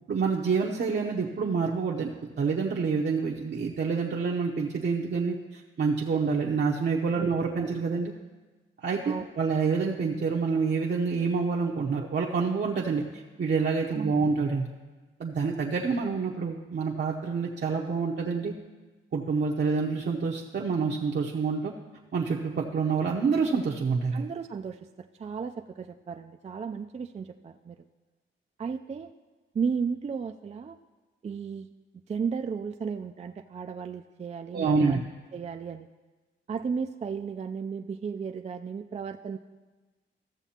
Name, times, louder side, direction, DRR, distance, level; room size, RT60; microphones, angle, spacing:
voice 1, 0.1-8.1 8.8-14.7 15.2-18.5 19.1-21.7 22.1-24.2 34.5-35.0, right 5 dB, 55° right, -2 dB, 0.8 m, -27 dB
voice 2, 13.9-14.3 24.1-27.8 28.6-29.1 29.5-30.8 31.2-31.7 32.1-35.0 35.3-35.9 36.5-39.4, right 6 dB, 30° right, 6 dB, 0.4 m, -34 dB
14.5 x 7.0 x 2.9 m, 1.2 s
cardioid pair, 75°, 21 cm